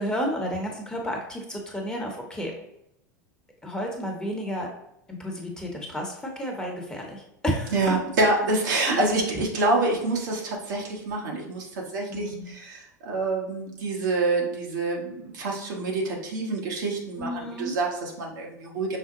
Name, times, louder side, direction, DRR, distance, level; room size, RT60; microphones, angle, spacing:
voice 1, 0.0-2.5 3.6-4.7 5.1-7.9 8.9-9.0 12.1-12.5 17.2-17.7, equal, 10° left, 0 dB, 1.0 m, -31 dB
voice 2, 7.7-19.0, right 2 dB, 80° right, -1 dB, 1.2 m, -27 dB
5.5 x 2.2 x 3.7 m, 0.81 s
hypercardioid pair, 100°, 10 cm